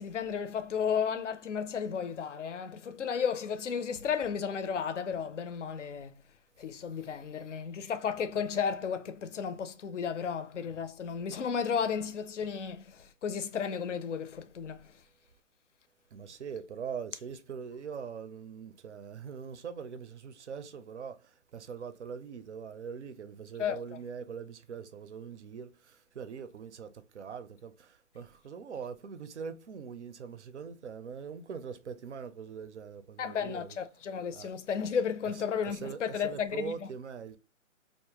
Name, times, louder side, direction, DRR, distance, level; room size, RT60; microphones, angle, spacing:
voice 1, 0.0-6.1 6.6-15.0 23.6-24.0 33.2-37.0, left 7 dB, 65° left, 0.5 m, -33 dB
voice 2, 16.1-21.2 21.5-33.8 34.3-34.5 35.6-37.4, right 6 dB, 60° right, 0.5 m, -42 dB
2.4 x 2.1 x 2.8 m
hypercardioid pair, 180°, 39 cm